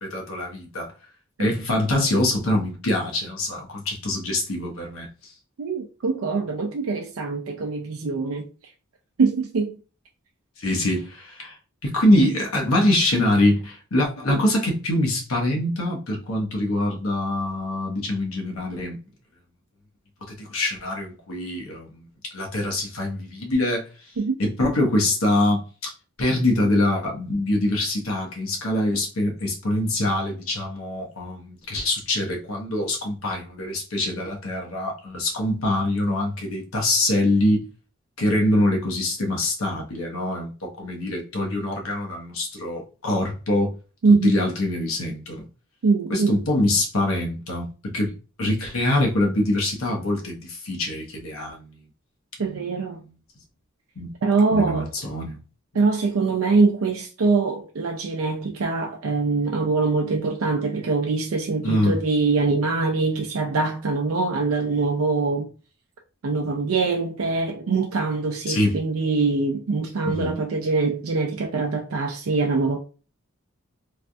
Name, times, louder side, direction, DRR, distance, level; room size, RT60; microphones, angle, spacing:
voice 1, 0.0-0.9 1.4-5.1 10.6-11.6 11.8-19.0 20.2-23.9 24.4-25.9 26.2-37.6 38.2-43.7 44.2-45.4 46.1-48.1 48.4-51.7 52.4-52.8 54.0-54.1 54.5-55.4 61.6-62.0 68.5-68.8 70.0-70.4, left 1 dB, 85° left, 0.9 m, -24 dB
voice 2, 5.6-8.4 9.2-9.7 14.3-14.4 24.2-24.4 44.0-44.4 45.8-46.4 52.4-53.0 54.2-54.9 55.7-65.5 66.2-72.8, right 4 dB, 80° right, 0.4 m, -23 dB
3.2 x 2.3 x 2.6 m
head